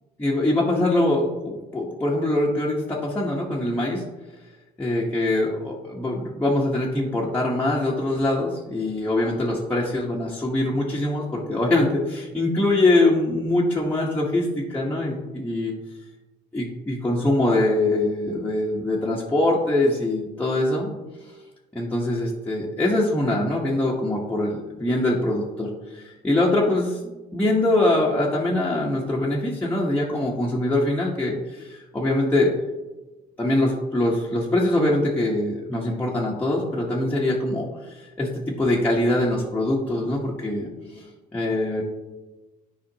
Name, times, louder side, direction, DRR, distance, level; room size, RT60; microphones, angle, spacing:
voice 1, 0.2-4.0 4.8-15.7 16.5-20.9 21.7-32.5 33.4-41.1 41.3-41.8, left 1 dB, 10° left, -5 dB, 1.2 m, -23 dB
11.0 x 5.0 x 2.9 m, 1.1 s
cardioid pair, 110°, 17 cm